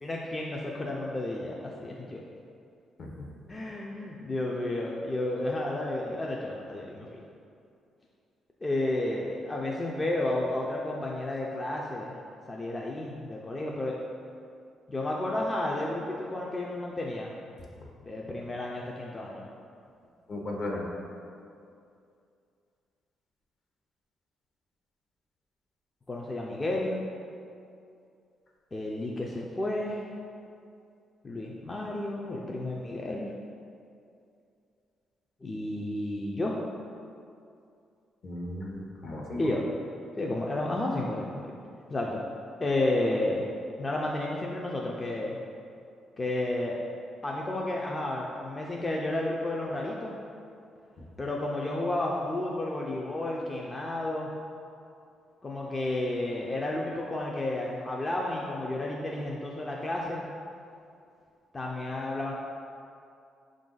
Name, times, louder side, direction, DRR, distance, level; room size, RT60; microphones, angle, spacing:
voice 1, 0.0-2.2 3.5-7.2 8.6-12.1 12.5-14.0 14.9-17.3 18.0-19.4 26.1-27.0 28.7-30.1 31.2-33.3 35.4-36.6 39.4-39.6 40.2-41.5 41.9-42.2 42.6-43.4 43.8-45.4 46.2-46.8 47.2-50.2 51.2-54.3 55.4-60.2 61.5-62.3, left 1 dB, 25° left, -2 dB, 0.4 m, -31 dB
voice 2, 20.3-20.8 38.2-39.4, left 1 dB, 55° left, -1 dB, 0.8 m, -36 dB
5.5 x 2.5 x 3.8 m, 2.5 s
cardioid pair, 90°, 0 cm